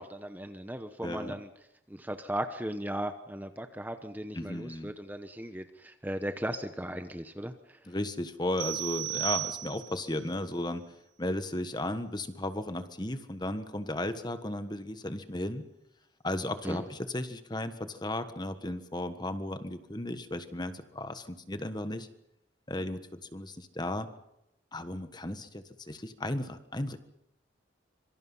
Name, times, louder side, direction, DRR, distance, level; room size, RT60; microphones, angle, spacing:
voice 1, 0.0-1.5 1.9-7.5 16.6-16.8, right 1 dB, 10° right, 8 dB, 1.0 m, -37 dB
voice 2, 1.0-1.4 4.3-4.9 7.8-10.8 11.2-15.6 16.2-22.1 22.7-24.1 24.7-27.0, left 1 dB, 20° left, 10 dB, 1.4 m, -35 dB
sound 1, 8.6-10.1, right 18 dB, 90° right, 2.3 m, -34 dB
26.0 x 24.0 x 5.6 m, 0.83 s
head